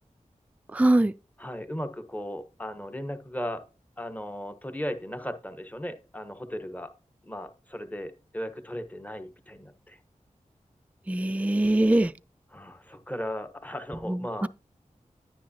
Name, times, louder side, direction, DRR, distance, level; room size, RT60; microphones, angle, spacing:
voice 1, 0.7-1.1 11.1-12.1 14.1-14.5, right 1 dB, 10° right, 0.3 m, -22 dB
voice 2, 1.4-3.6 4.0-6.9 7.2-10.0 12.5-14.5, equal, 10° left, 1.1 m, -36 dB
10.5 x 9.3 x 2.8 m
wide cardioid pair, 55°, 13 cm